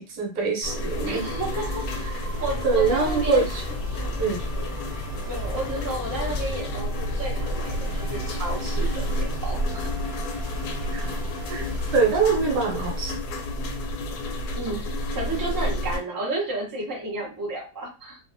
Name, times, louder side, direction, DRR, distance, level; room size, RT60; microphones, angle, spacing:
voice 1, 0.0-1.3 2.6-3.6 4.2-4.4 10.9-11.2 11.5-11.7 11.9-13.2, right 4 dB, 75° right, -1 dB, 1.3 m, -24 dB
sound 1, 0.6-16.0, left 1 dB, 75° left, 1.1 m, -30 dB
sound 2, 0.9-12.0, equal, 45° right, 0.8 m, -37 dB
voice 2, 1.0-1.8 2.4-3.4 5.3-9.9 14.6-14.8 15.1-18.2, right 2 dB, 25° right, -3 dB, 0.4 m, -32 dB
2.7 x 2.5 x 2.5 m, 0.33 s
omnidirectional pair, 1.9 m